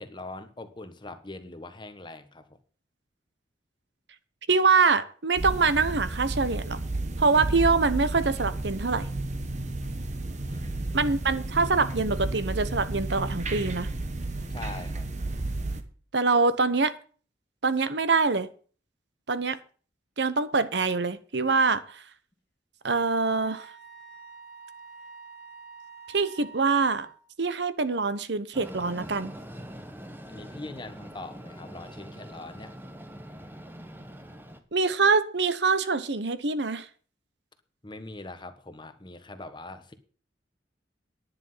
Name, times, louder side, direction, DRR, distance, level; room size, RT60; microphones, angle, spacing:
voice 1, 0.0-2.6 10.5-11.1 14.5-15.1 30.3-32.8 37.8-39.9, left 2 dB, 25° left, 1.3 m, -42 dB
voice 2, 4.5-6.8 7.2-9.1 10.9-13.9 16.1-16.9 17.6-18.5 19.3-19.6 20.2-22.0 22.8-23.7 26.1-27.1 27.4-29.3 34.7-36.9, right 4 dB, 70° right, 1.0 m, -24 dB
sound 1, 5.4-15.8, right 2 dB, 40° right, 1.4 m, -32 dB
Wind instrument woodwind instrument, 23.1-27.3, right 5 dB, 65° left, 2.4 m, -47 dB
Train, 28.5-34.6, equal, 10° right, 1.2 m, -43 dB
10.5 x 9.7 x 5.7 m
head